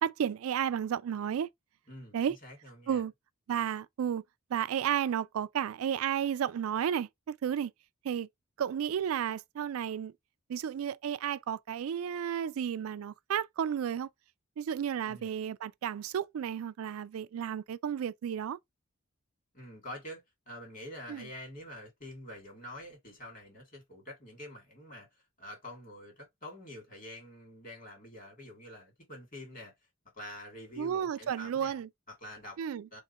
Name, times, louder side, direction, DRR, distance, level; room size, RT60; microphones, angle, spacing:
voice 1, 0.0-1.5 2.1-2.4 2.9-3.1 3.5-4.2 4.5-7.7 8.0-8.3 8.6-10.1 10.5-14.1 14.6-18.6 21.1-21.3 30.8-31.9 32.6-32.9, right 8 dB, 85° right, 0.3 m, -32 dB
voice 2, 1.9-3.0 15.0-15.3 19.5-29.7 30.1-31.8 32.1-32.6 32.9-33.0, left 1 dB, 40° left, 2.5 m, -47 dB
3.6 x 2.3 x 4.3 m
head